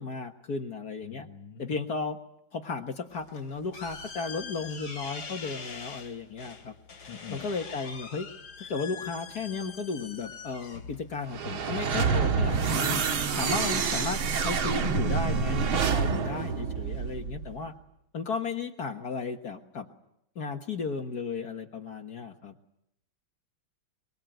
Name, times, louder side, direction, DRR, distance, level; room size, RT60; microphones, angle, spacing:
voice 1, 0.0-1.3 1.6-2.2 2.5-8.3 8.6-13.0 13.3-17.7 18.1-19.9 20.4-22.6, left 4 dB, 50° left, 5 dB, 1.8 m, -35 dB
voice 2, 1.0-1.8 7.1-7.5, left 7 dB, 70° left, -3 dB, 2.3 m, -45 dB
sound 1, 3.1-12.2, left 5 dB, 90° left, 3.4 m, -44 dB
sound 2, 11.3-17.5, right 5 dB, 90° right, 2.4 m, -27 dB
23.5 x 23.0 x 9.2 m, 0.78 s
omnidirectional pair, 2.2 m